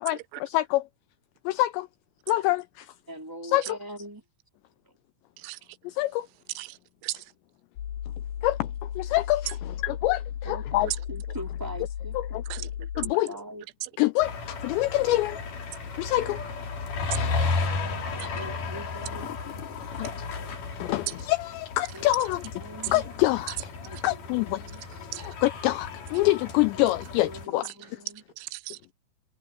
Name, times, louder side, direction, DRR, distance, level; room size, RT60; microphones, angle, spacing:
voice 1, 0.0-0.9 1.5-1.9 2.3-2.9 3.5-3.8 5.8-6.3 8.4-10.9 12.1-12.4 13.0-13.3 14.0-15.4 16.0-16.4 17.2-17.4 18.2-18.4 20.0-20.3 20.8-22.4 22.9-23.6 24.0-24.6 25.4-27.7, left 17 dB, 90° left, 2.5 m, -26 dB
voice 2, 3.1-4.2 4.8-5.0 10.4-13.6 18.3-19.3 21.9-22.0 22.6-23.0 23.8-25.0 27.2-28.2, equal, 5° right, 2.4 m, -42 dB
voice 3, 6.6-7.3 10.8-11.0 12.5-12.6 17.1-17.2 18.2-18.3 23.9-24.0 25.1-25.3 27.7-27.8 28.4-28.8, right 20 dB, 85° right, 2.9 m, -36 dB
sound 1, 7.8-13.1, left 9 dB, 70° left, 2.2 m, -35 dB
sound 2, 14.2-27.5, left 4 dB, 45° left, 4.3 m, -34 dB
omnidirectional pair, 5.7 m